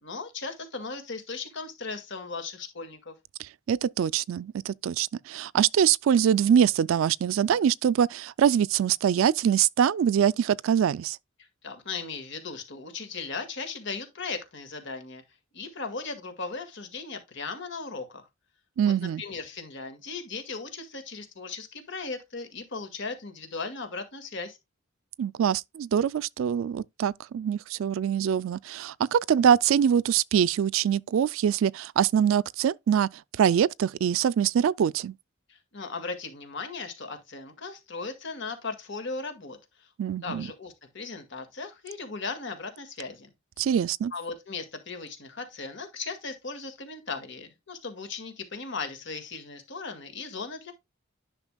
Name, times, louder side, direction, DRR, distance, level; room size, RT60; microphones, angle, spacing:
voice 1, 0.0-3.2 11.6-15.2 15.5-18.3 18.8-24.6 35.5-39.9 40.2-43.3 44.1-50.7, left 4 dB, 65° left, 1.9 m, -37 dB
voice 2, 3.4-11.2 18.8-19.2 25.2-33.1 33.4-35.1 40.0-40.5 43.6-44.1, right 8 dB, 80° right, 0.3 m, -24 dB
10.5 x 5.8 x 2.2 m
head